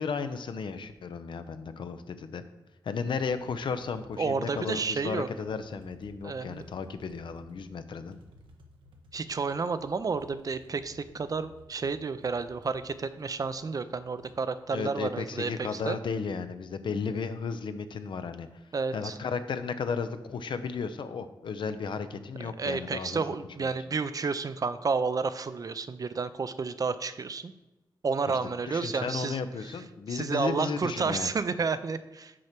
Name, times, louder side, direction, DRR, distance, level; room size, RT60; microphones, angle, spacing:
voice 1, 0.0-2.4 2.8-8.2 14.7-18.5 18.9-23.2 23.6-23.7 28.3-28.4 28.7-31.3, left 5 dB, 70° left, 10 dB, 0.6 m, -34 dB
sound 1, 3.1-15.7 15.9-16.0 16.3-18.1 18.4-18.5 18.8-19.6, equal, 90° right, 1.0 m, -57 dB
voice 2, 4.2-5.3 6.2-6.7 9.1-16.0 18.7-19.2 22.6-27.5 28.0-29.4 30.1-32.3, right 4 dB, 45° right, 13 dB, 0.5 m, -31 dB
6.3 x 4.4 x 5.8 m, 1.0 s
cardioid pair, 70°, 8 cm